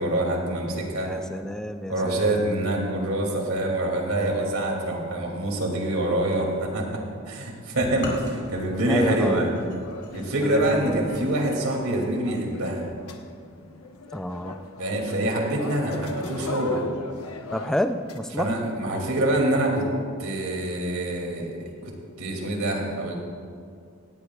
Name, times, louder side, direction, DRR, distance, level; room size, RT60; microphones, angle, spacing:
voice 1, 0.0-1.1 1.9-9.5 10.1-12.8 14.8-16.8 18.4-19.9 20.2-21.6 22.2-23.1, right 1 dB, 80° right, 1 dB, 2.6 m, -25 dB
voice 2, 1.0-2.4 8.8-9.4 10.4-11.1 14.1-14.6 17.5-18.6, equal, 5° left, 8 dB, 0.4 m, -29 dB
sound 1, 7.8-11.6, left 1 dB, 55° left, 2.9 m, -40 dB
sound 2, 7.9-18.2, left 2 dB, 80° left, 1.0 m, -38 dB
18.0 x 17.0 x 2.4 m, 2.2 s
head